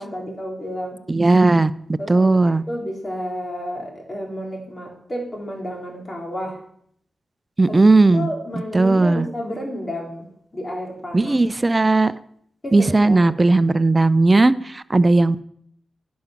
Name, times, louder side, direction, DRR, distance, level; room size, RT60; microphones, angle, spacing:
voice 1, 0.0-1.0 2.0-6.6 7.7-7.8 8.1-10.3 10.5-11.4 12.6-13.4, equal, 30° left, 0 dB, 3.3 m, -31 dB
voice 2, 1.1-1.7 2.1-2.6 7.6-8.3 8.7-9.3 11.1-12.1 12.7-15.4, right 2 dB, 30° right, 15 dB, 0.5 m, -16 dB
10.5 x 5.3 x 6.0 m, 0.68 s
cardioid pair, 50°, 0 cm